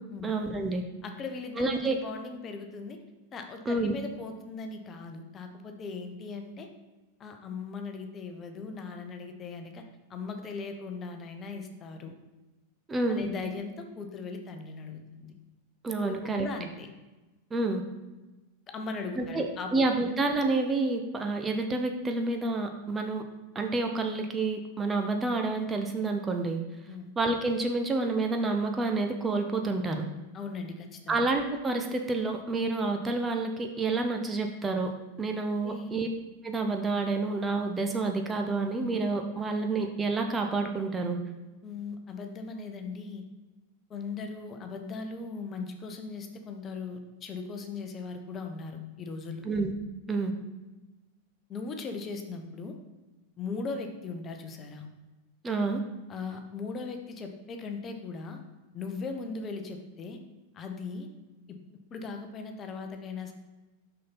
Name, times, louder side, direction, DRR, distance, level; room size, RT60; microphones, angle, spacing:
voice 1, 0.2-0.8 1.6-2.0 3.7-3.9 12.9-13.3 15.8-16.5 17.5-17.8 19.2-23.2 23.5-26.6 27.2-30.0 31.1-34.9 35.2-36.1 36.4-41.2 49.4-49.7 50.1-50.3 55.4-55.8, right 3 dB, 15° right, 4 dB, 0.7 m, -29 dB
voice 2, 1.0-3.0 3.3-6.7 7.2-9.8 10.1-12.1 13.1-15.3 16.0-16.9 18.7-19.7 26.9-27.1 30.3-31.2 35.6-35.9 41.6-43.2 43.9-49.4 51.5-52.7 53.4-54.9 56.1-58.4 58.7-60.2 60.5-61.1 61.5-61.6 61.9-63.3, left 4 dB, 25° left, 5 dB, 0.9 m, -38 dB
6.3 x 5.9 x 4.1 m, 1.1 s
figure-of-eight pair, 90°, 0 cm